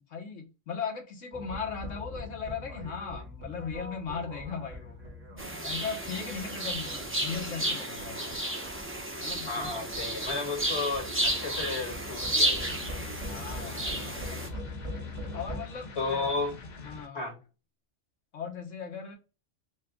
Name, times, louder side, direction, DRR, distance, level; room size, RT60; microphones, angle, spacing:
voice 1, 0.0-8.4 9.2-9.7 13.2-14.8 15.3-16.3 16.8-17.4 18.3-19.1, left 6 dB, 80° left, 1.6 m, -38 dB
sound 1, 1.3-15.6, left 1 dB, 75° right, 1.9 m, -43 dB
sound 2, 5.4-14.5, right 1 dB, 10° right, 0.7 m, -32 dB
voice 2, 9.5-12.7 16.0-16.5 17.1-17.4, left 3 dB, 60° left, 2.4 m, -33 dB
sound 3, 12.7-17.1, left 3 dB, 40° left, 0.8 m, -45 dB
5.0 x 2.3 x 3.6 m
omnidirectional pair, 1.3 m